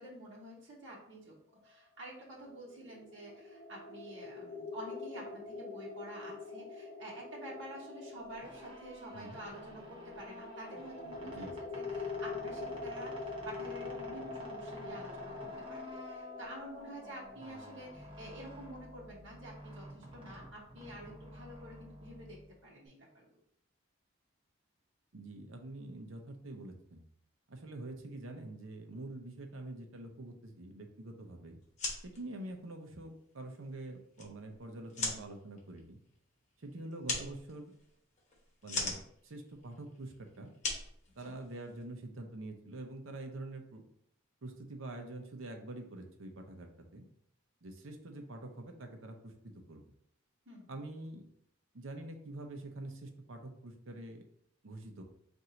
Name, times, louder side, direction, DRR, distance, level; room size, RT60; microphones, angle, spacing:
voice 1, 0.0-1.4 1.6-23.4 41.2-41.3 50.5-50.8, right 1 dB, 60° right, -6 dB, 1.1 m, -49 dB
sound 1, 2.4-19.3, left 3 dB, 20° left, 1.1 m, -45 dB
sound 2, 8.2-22.9, equal, 25° right, 0.8 m, -51 dB
voice 2, 11.2-11.6 25.1-27.0 27.5-31.6 32.0-36.0 36.6-37.7 38.6-40.5 41.2-43.8 44.4-47.1 47.6-49.8 50.7-51.2 51.7-54.2 54.6-55.0, right 2 dB, 80° right, 4 dB, 0.7 m, -46 dB
sound 3, 31.6-41.8, left 3 dB, 35° left, 1.1 m, -42 dB
4.4 x 2.6 x 3.9 m, 0.69 s
head